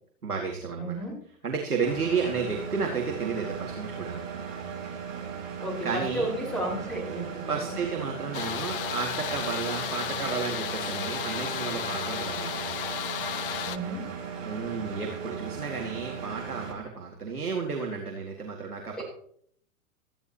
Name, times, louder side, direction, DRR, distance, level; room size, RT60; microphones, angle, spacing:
voice 1, 0.2-1.0 1.4-4.2 5.8-6.3 7.5-12.6 14.4-19.0, right 5 dB, 75° right, 1 dB, 2.3 m, -32 dB
voice 2, 0.8-1.2 2.2-2.3 5.6-7.8 13.6-14.1 19.0-19.1, right 1 dB, ahead, -4 dB, 4.7 m, -33 dB
Engine, 1.8-16.7, right 6 dB, 60° right, 5.2 m, -37 dB
sound 1, 8.3-13.8, left 9 dB, 35° left, 0.7 m, -33 dB
24.5 x 10.5 x 2.9 m, 0.63 s
figure-of-eight pair, 105°, 45 cm